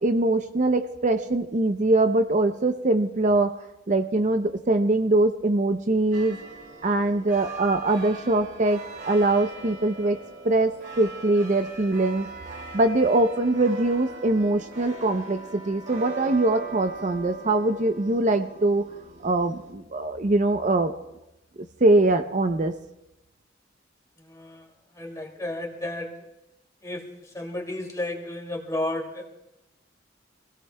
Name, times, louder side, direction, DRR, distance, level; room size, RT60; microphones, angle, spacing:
voice 1, 0.0-3.6 3.9-6.4 6.8-8.8 9.1-10.2 10.4-12.3 12.7-18.8 19.2-20.9 21.8-22.7, right 2 dB, 40° right, 7 dB, 0.6 m, -22 dB
sound 1, 6.1-19.7, right 4 dB, 65° right, 2.6 m, -41 dB
voice 2, 24.2-26.1 26.8-29.3, left 1 dB, 20° left, 1 dB, 2.4 m, -33 dB
26.0 x 17.0 x 2.2 m, 0.93 s
head